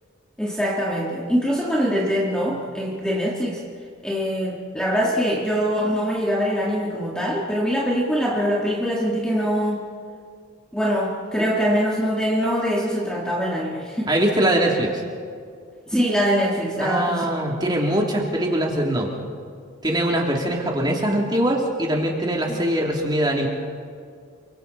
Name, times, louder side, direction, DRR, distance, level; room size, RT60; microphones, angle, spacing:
voice 1, 0.4-3.6 4.0-9.8 10.7-14.1 15.9-17.4 22.5-22.6, equal, 5° left, -3 dB, 1.9 m, -23 dB
voice 2, 14.1-15.0 16.8-19.1 19.8-23.5, right 1 dB, 20° right, -1 dB, 3.1 m, -22 dB
29.0 x 24.5 x 4.2 m, 2.1 s
head